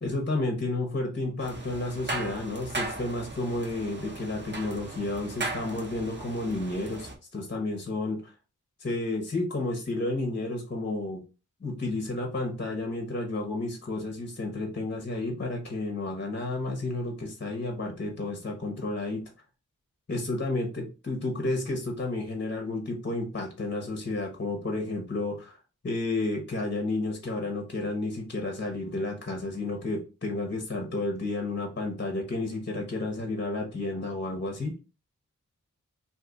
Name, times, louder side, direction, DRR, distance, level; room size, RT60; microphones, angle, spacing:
voice 1, 0.0-8.3 8.8-11.2 11.6-19.2 20.1-25.6 25.8-34.7, left 2 dB, 35° left, 2 dB, 0.8 m, -31 dB
sound 1, 1.4-7.1, right 2 dB, 35° right, 0.8 m, -37 dB
2.6 x 2.5 x 3.8 m, 0.32 s
wide cardioid pair, 60°, 32 cm